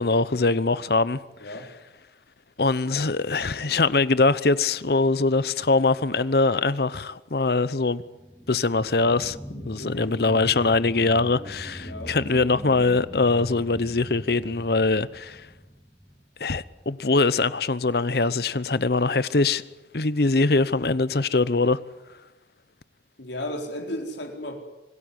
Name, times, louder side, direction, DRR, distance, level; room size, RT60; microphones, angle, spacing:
voice 1, 0.0-1.2 2.6-8.0 8.5-15.5 16.4-19.6 19.9-21.8, left 3 dB, 60° left, 0.8 m, -22 dB
sound 1, 8.0-17.1 17.5-17.6, equal, 5° left, 2.6 m, -41 dB
voice 2, 9.8-10.1 11.7-12.6 23.2-24.6, left 1 dB, 75° left, 4.3 m, -35 dB
26.0 x 18.0 x 9.7 m
head